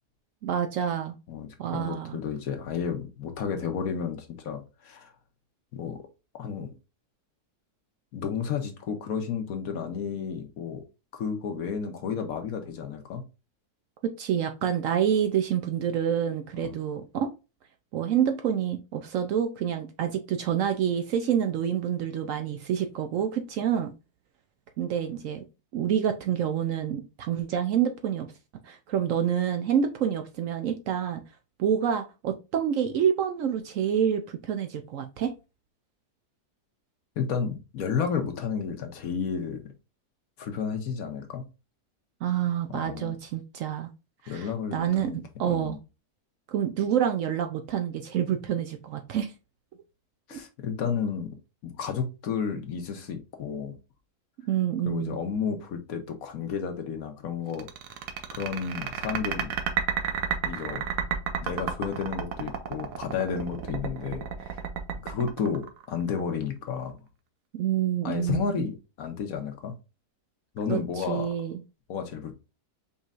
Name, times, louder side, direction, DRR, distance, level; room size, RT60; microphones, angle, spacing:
voice 1, 0.4-1.1 1.6-2.2 14.0-17.3 17.9-23.9 24.8-25.4 25.7-28.3 28.6-31.2 31.6-35.3 42.2-43.9 44.2-44.5 44.7-45.8 46.5-49.3 50.3-50.4 54.5-55.2 67.6-68.7 70.7-71.5, right 9 dB, 70° right, 0.8 m, -27 dB
voice 2, 1.3-5.1 5.7-6.0 6.4-6.7 8.1-10.8 11.1-13.2 16.5-16.8 37.2-39.7 40.4-41.4 42.7-43.2 44.3-45.8 50.3-51.3 51.6-53.7 54.8-57.7 58.3-59.5 60.4-60.8 61.4-64.6 65.0-67.0 68.0-69.7 70.5-71.3 71.9-72.3, left 6 dB, 65° left, 1.3 m, -32 dB
sound 1, 57.5-66.2, right 8 dB, 90° right, 1.3 m, -31 dB
5.4 x 3.0 x 2.4 m
omnidirectional pair, 1.7 m